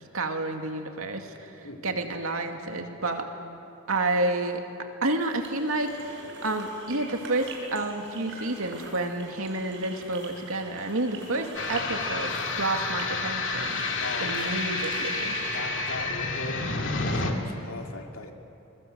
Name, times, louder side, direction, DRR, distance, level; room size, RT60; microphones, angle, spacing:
voice 1, 0.1-1.5 1.8-3.3 3.9-4.6 5.0-13.8 14.2-15.4, right 2 dB, 80° right, 4 dB, 2.3 m, -30 dB
voice 2, 1.6-2.0 14.0-14.6 15.5-18.3, left 2 dB, 80° left, 3 dB, 2.5 m, -39 dB
sound 1, 5.2-15.6, right 3 dB, 60° right, 6.3 m, -44 dB
sound 2, 11.5-17.3, left 3 dB, 60° left, 2.3 m, -29 dB
27.0 x 22.0 x 8.1 m, 2.8 s
head